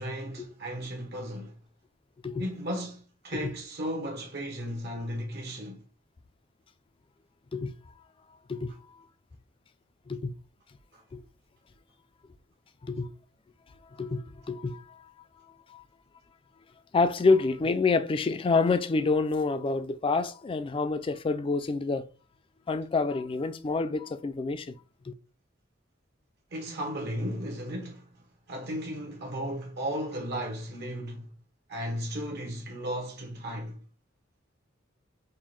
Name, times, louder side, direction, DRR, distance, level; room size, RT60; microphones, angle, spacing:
voice 1, 0.0-1.6 2.4-5.8 10.9-11.0 26.5-31.3 31.7-33.8, equal, 55° right, 0.9 m, -35 dB
voice 2, 14.0-15.0 15.7-15.8 16.9-22.1 22.7-24.7 25.1-25.2, left 4 dB, 25° left, 0.3 m, -27 dB
5.4 x 2.1 x 3.1 m
head